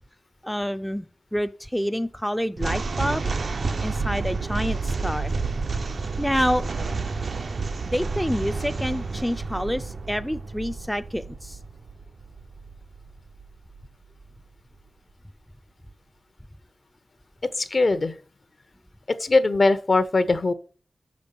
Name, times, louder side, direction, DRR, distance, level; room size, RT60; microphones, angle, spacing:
voice 1, 0.4-3.3 3.8-5.3 6.2-6.6 7.9-11.6, equal, 5° left, 9 dB, 0.4 m, -27 dB
sound 1, 2.6-13.9, right 4 dB, 65° right, 0.5 m, -30 dB
voice 2, 17.6-18.1 19.2-20.5, left 3 dB, 50° left, 12 dB, 0.8 m, -20 dB
6.6 x 5.2 x 6.7 m, 0.39 s
wide cardioid pair, 70°, 0 cm